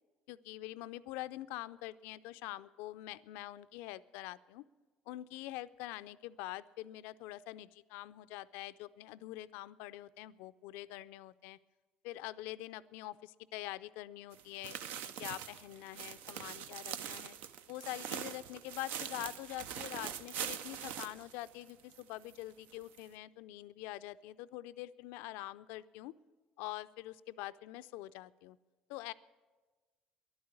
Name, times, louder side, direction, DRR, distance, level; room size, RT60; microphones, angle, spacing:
voice 1, 0.3-4.6 5.1-11.6 12.0-14.8 15.2-17.4 17.7-26.1 26.6-28.6 28.9-29.1, left 16 dB, 80° left, 15 dB, 0.4 m, -45 dB
sound 1, 14.3-22.0 22.3-22.4 22.9-23.0, right 9 dB, 75° right, 0.6 m, -43 dB
11.0 x 9.5 x 9.5 m, 1.3 s
supercardioid pair, 75°, 3 cm